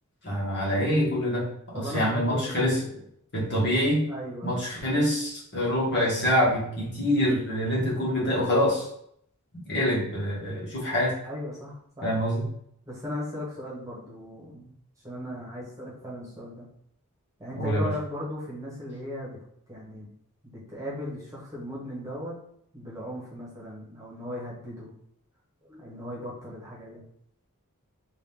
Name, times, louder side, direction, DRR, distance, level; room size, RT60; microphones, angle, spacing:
voice 1, 0.2-1.5 1.7-2.8 3.3-4.0 4.4-8.9 9.6-11.1 12.0-12.4 17.5-17.9, equal, 50° left, -6 dB, 1.5 m, -25 dB
voice 2, 1.7-3.0 4.1-4.6 11.2-12.1 12.9-14.7 15.0-16.7 17.4-19.4 19.7-20.1 20.4-22.4 22.7-24.9 25.6-27.0, left 1 dB, 15° right, -6 dB, 1.2 m, -37 dB
3.8 x 2.6 x 3.5 m, 0.70 s
head